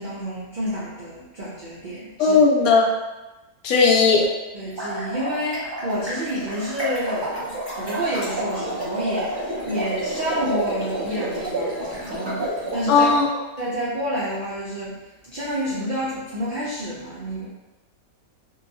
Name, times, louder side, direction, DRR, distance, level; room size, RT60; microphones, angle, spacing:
voice 1, 0.0-2.4 4.5-13.1 13.6-14.9 15.3-17.5, equal, 85° right, -8 dB, 0.4 m, -29 dB
voice 2, 2.2-2.9 3.6-4.3 12.9-13.3, left 4 dB, 80° left, -1 dB, 1.0 m, -16 dB
sound 1, 4.6-13.1, right 1 dB, 25° right, 0.6 m, -29 dB
2.7 x 2.3 x 2.6 m, 1.1 s
omnidirectional pair, 1.5 m